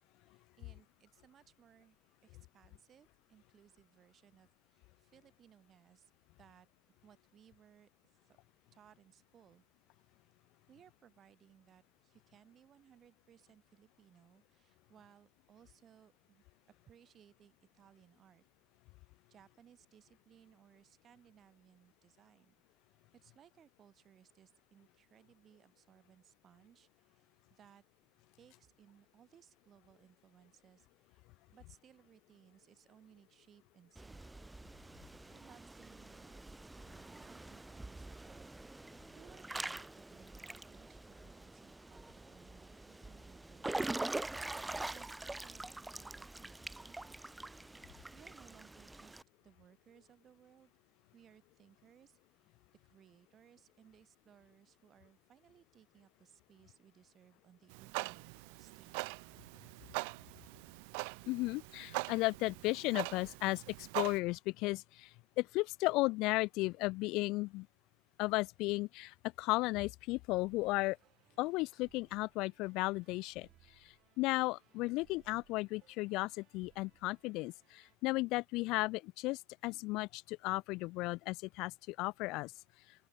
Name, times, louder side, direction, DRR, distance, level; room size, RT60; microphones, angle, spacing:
voice 1, 0.3-6.1 6.4-6.7 7.0-8.2 8.7-9.6 10.7-16.4 16.8-18.4 19.3-22.5 23.1-27.8 28.4-31.2 31.5-34.3 35.3-36.5 36.8-38.5 39.1-47.4 48.1-50.7 51.1-52.2 52.8-59.2, right 9 dB, 35° right, 5.9 m, -64 dB
Water / Splash splatter / Drip, 34.0-49.2, right 2 dB, 10° right, 1.1 m, -45 dB
Clock, 57.7-64.2, right 36 dB, 70° right, 1.8 m, -42 dB
voice 2, 61.3-65.1 65.4-67.7 68.2-71.0 71.4-73.5 74.2-82.5, left 22 dB, 60° left, 0.8 m, -35 dB
sound 1, 70.4-78.0, right 16 dB, 55° right, 8.0 m, -69 dB
open air
supercardioid pair, 110°, 0 cm